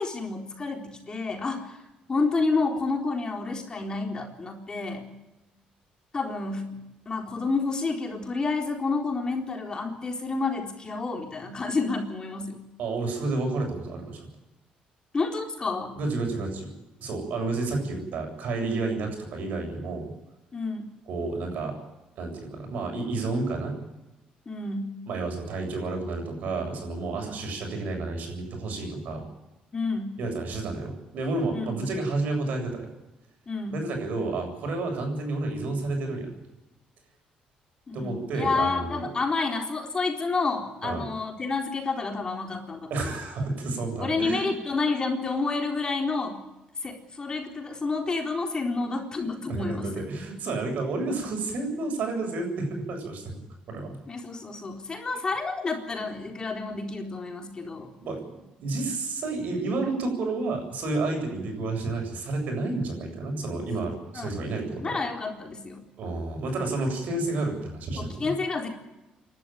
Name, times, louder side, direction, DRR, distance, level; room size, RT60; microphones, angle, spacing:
voice 1, 0.0-1.8 2.1-5.1 6.1-6.8 7.1-12.6 15.1-16.0 20.5-20.9 24.5-25.0 27.2-27.4 29.7-30.2 31.5-31.8 33.5-33.8 37.9-43.1 44.0-46.4 46.8-50.0 54.1-57.9 64.1-64.4 64.8-65.9 67.9-68.7, left 3 dB, 30° left, 3 dB, 4.0 m, -29 dB
voice 2, 12.8-14.3 15.9-16.7 17.0-20.1 21.1-21.7 22.2-23.8 25.1-29.2 30.2-32.9 33.7-36.3 37.9-39.1 40.8-41.0 42.9-44.5 49.5-53.4 53.7-54.0 58.0-65.0 66.0-68.3, right 3 dB, 65° right, 3 dB, 7.9 m, -30 dB
27.5 x 12.5 x 9.3 m, 0.98 s
cardioid pair, 110°, 3 cm